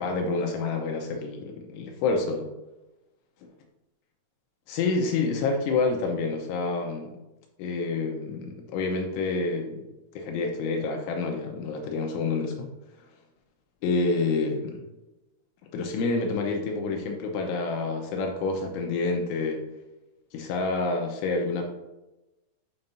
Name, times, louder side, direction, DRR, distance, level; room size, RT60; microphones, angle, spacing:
voice 1, 0.0-2.4 4.7-7.1 7.6-9.8 10.1-12.7 13.8-14.8 15.7-19.6 20.3-21.6, left 3 dB, 80° left, 2 dB, 3.1 m, -28 dB
8.0 x 7.1 x 2.7 m, 1.0 s
omnidirectional pair, 5.8 m